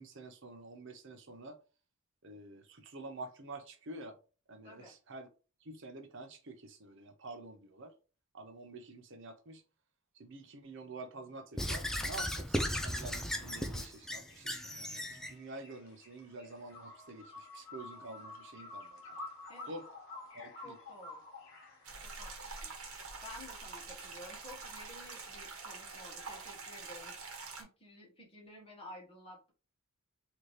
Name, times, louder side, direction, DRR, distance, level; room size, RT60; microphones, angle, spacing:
voice 1, 0.0-1.6 2.2-4.2 4.5-5.3 5.6-7.9 8.3-9.6 10.1-19.0 19.7-19.9 20.3-20.8, right 2 dB, 55° right, 0.6 m, -48 dB
voice 2, 4.6-4.9 19.5-19.7 20.6-21.2 22.0-22.3 22.6-22.7 23.2-27.2 27.5-29.5, left 1 dB, 25° left, 1.4 m, -52 dB
Squeak / Writing, 11.6-15.3, equal, ahead, 0.3 m, -36 dB
sound 1, 13.4-24.2, left 2 dB, 60° left, 1.1 m, -51 dB
sound 2, 21.8-27.6, right 4 dB, 80° right, 1.1 m, -46 dB
3.9 x 2.8 x 3.2 m
head